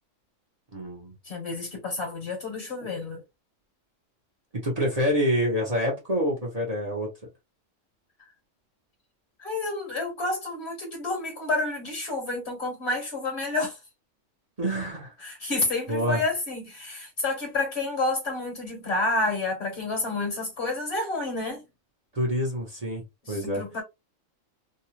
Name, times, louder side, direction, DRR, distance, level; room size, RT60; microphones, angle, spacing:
voice 1, 0.7-1.1 4.6-7.1 14.6-15.1 15.9-16.2 22.1-23.6, equal, 35° right, 0.9 m, -27 dB
voice 2, 1.2-3.2 9.4-13.8 15.2-21.6 23.2-23.8, left 2 dB, 55° left, 1.3 m, -29 dB
2.8 x 2.3 x 2.9 m
omnidirectional pair, 1.3 m